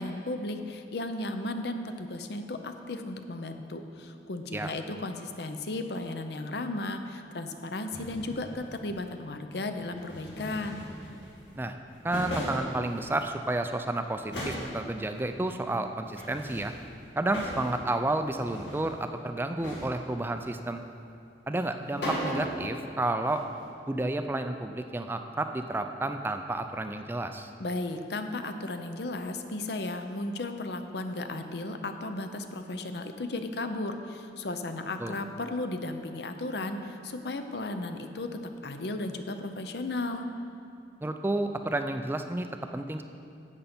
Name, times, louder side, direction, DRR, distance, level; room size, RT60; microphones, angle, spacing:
voice 1, 0.0-10.9 27.6-40.3, left 2 dB, 60° left, 7 dB, 0.7 m, -35 dB
sound 1, 7.9-9.0 9.8-11.6 11.9-13.5 13.8-13.9 14.2-15.3 16.1-17.9 18.2-19.0 19.6-20.2 21.6-21.7 22.0-22.7 23.0-23.6, equal, 75° left, 2.1 m, -38 dB
voice 2, 12.0-16.7 17.2-20.8 21.5-23.4 23.9-27.5 35.0-35.2 41.0-42.5 42.7-43.0, right 2 dB, 10° right, 7 dB, 0.3 m, -31 dB
11.0 x 7.9 x 4.3 m, 2.6 s
head